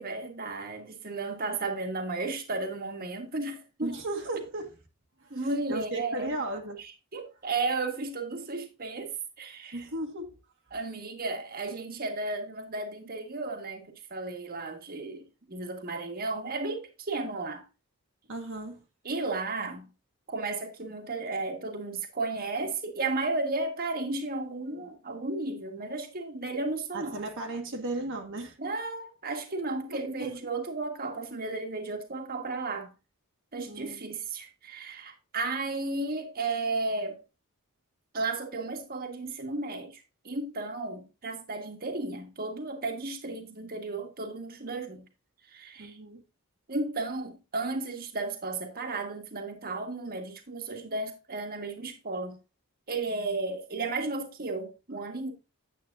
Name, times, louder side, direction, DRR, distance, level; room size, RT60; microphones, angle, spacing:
voice 1, 0.0-4.0 5.3-6.4 7.1-9.8 10.7-17.6 19.0-19.9 20.3-27.2 28.6-32.9 33.5-37.2 38.1-45.0 45.5-46.0 46.7-52.4 52.9-55.3, right 3 dB, 45° right, 1.5 m, -34 dB
voice 2, 3.8-4.7 5.2-6.8 9.7-10.3 18.3-18.8 26.9-28.6 29.9-30.3 33.7-34.1 45.8-46.2, right 2 dB, 60° right, 1.5 m, -36 dB
9.5 x 7.9 x 2.5 m
head